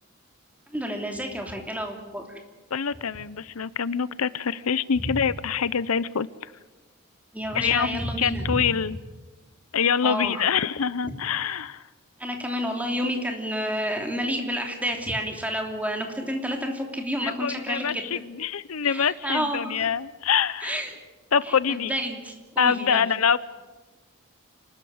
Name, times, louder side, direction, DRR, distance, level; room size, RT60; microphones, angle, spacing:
voice 1, 0.7-2.4 5.0-5.2 7.3-8.7 10.0-10.5 11.0-11.1 12.2-18.2 18.8-19.9 20.6-21.0 21.4-23.1, equal, 5° right, 3 dB, 3.1 m, -30 dB
voice 2, 2.7-6.3 7.5-9.0 9.7-11.8 17.2-20.7 21.3-21.9 22.6-23.4, left 7 dB, 85° left, 17 dB, 0.7 m, -25 dB
29.0 x 13.5 x 9.6 m, 1.2 s
head